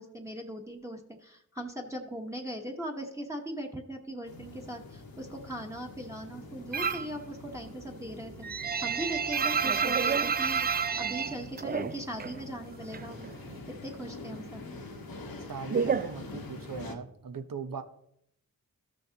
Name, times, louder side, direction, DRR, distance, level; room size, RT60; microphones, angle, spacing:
voice 1, 0.0-8.5 8.8-10.7 11.0-13.3 13.7-14.6, right 1 dB, 10° right, 0 dB, 1.3 m, -39 dB
sound 1, 4.2-17.0, left 3 dB, 85° left, 1.2 m, -46 dB
sound 2, 6.7-7.2 7.5-12.4 12.7-13.7 14.0-16.8, right 6 dB, 30° right, 0.3 m, -30 dB
voice 2, 15.5-17.8, right 5 dB, 70° right, 9 dB, 0.9 m, -39 dB
13.5 x 6.3 x 2.9 m, 0.73 s
cardioid pair, 50°, 35 cm